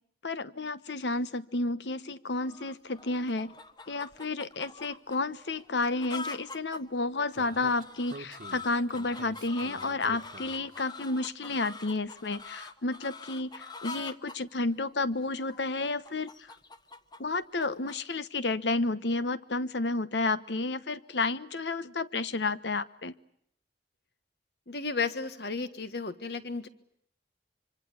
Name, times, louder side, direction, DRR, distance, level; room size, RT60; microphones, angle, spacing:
voice 1, 0.2-3.5 3.9-16.3 17.2-23.1, left 3 dB, 80° left, 15 dB, 1.1 m, -31 dB
sound 1, 2.4-18.0, left 3 dB, 25° left, 1.1 m, -45 dB
Speech, 7.4-10.8, right 2 dB, 50° right, 1.2 m, -47 dB
voice 2, 24.7-26.7, left 4 dB, 65° left, 12 dB, 1.5 m, -33 dB
25.5 x 25.0 x 8.4 m, 0.68 s
head